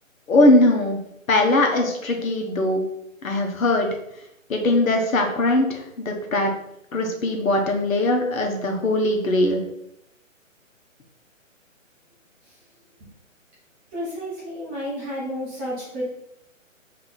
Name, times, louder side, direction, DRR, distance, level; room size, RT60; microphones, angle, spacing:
voice 1, 0.3-1.0 1.3-2.8 3.2-3.9 4.5-6.5 6.9-9.6, left 1 dB, 80° left, 2 dB, 1.3 m, -20 dB
voice 2, 13.9-16.0, equal, 10° right, -9 dB, 0.6 m, -31 dB
4.3 x 2.8 x 4.0 m, 0.78 s
hypercardioid pair, 155°, 40 cm